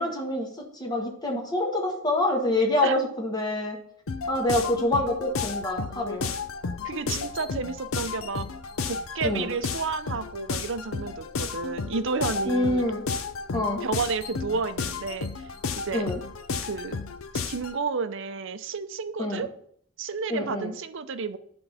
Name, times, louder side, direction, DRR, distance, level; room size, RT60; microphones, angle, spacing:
voice 1, 0.0-3.8 4.3-6.3 9.2-9.5 12.4-13.0 13.5-13.8 15.9-16.2 19.2-19.5 20.3-20.7, left 1 dB, 20° left, 0 dB, 1.7 m, -26 dB
sound 1, 4.1-17.8, left 5 dB, 80° left, 0.6 m, -33 dB
voice 2, 6.8-8.4 8.9-12.8 13.5-15.3 15.7-16.1 16.6-17.0 17.5-19.5 20.0-21.4, right 4 dB, 65° right, 11 dB, 0.6 m, -31 dB
10.5 x 3.8 x 5.6 m, 0.63 s
head